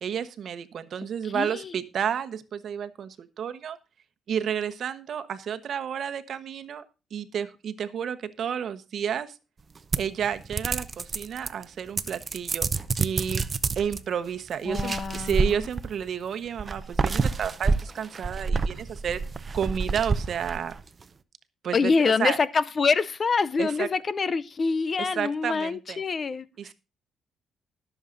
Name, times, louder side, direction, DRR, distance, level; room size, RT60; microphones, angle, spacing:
voice 1, 0.0-3.8 4.3-6.8 7.1-9.4 10.0-12.7 13.0-13.4 13.7-19.2 19.5-20.8 21.6-22.4 23.6-23.9 25.0-26.0 26.6-26.7, right 8 dB, 60° right, 1.1 m, -31 dB
voice 2, 1.3-1.7 14.7-15.5 21.7-26.5, left 4 dB, 40° left, 0.6 m, -25 dB
sound 1, 9.9-11.6 12.0-14.0 14.7-16.1 16.6-20.9, right 4 dB, 35° right, 0.8 m, -28 dB
20.0 x 7.2 x 2.6 m
cardioid pair, 90°, 0 cm